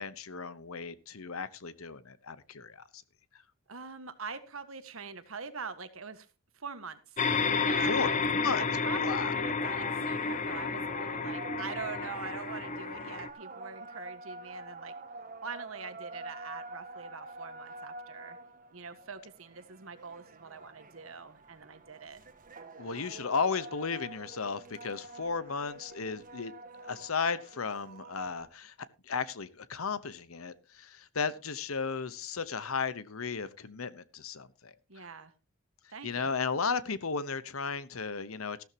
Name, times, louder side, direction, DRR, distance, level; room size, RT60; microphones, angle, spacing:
voice 1, 0.0-3.0 7.9-8.6 8.9-9.3 22.8-26.5 26.8-28.7 29.1-34.7 36.0-38.6, left 5 dB, 85° left, 1.0 m, -34 dB
voice 2, 3.7-6.3 6.5-7.2 7.6-8.2 8.6-14.9 15.4-18.4 18.7-22.2 34.9-35.3 35.9-36.3, right 5 dB, 70° right, 1.5 m, -43 dB
sound 1, 7.2-13.3, left 4 dB, 35° left, 0.9 m, -31 dB
sound 2, 9.3-28.5, right 2 dB, 40° right, 1.4 m, -47 dB
14.5 x 13.0 x 2.9 m
head